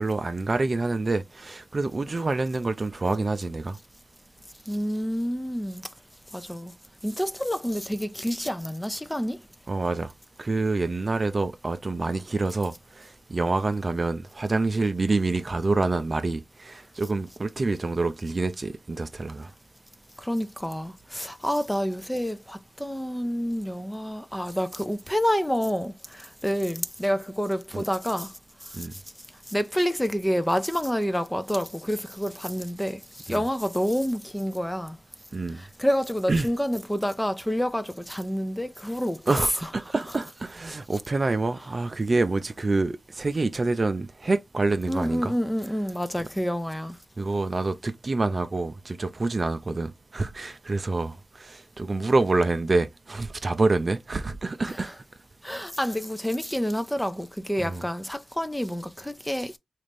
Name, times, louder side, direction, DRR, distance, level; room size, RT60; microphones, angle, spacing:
voice 1, 0.0-3.8 9.7-10.1 10.4-19.5 27.7-27.8 28.7-28.9 33.3-33.4 35.3-35.6 36.3-36.5 39.3-45.4 47.2-55.0 57.6-57.8, right 3 dB, 45° right, 0.5 m, -27 dB
voice 2, 4.7-5.9 6.3-6.7 7.0-9.4 20.2-28.3 28.6-29.0 29.5-35.0 35.6-39.7 44.9-47.0 55.4-59.6, equal, 10° left, 0.4 m, -28 dB
3.1 x 2.5 x 3.3 m
cardioid pair, 55°, 0 cm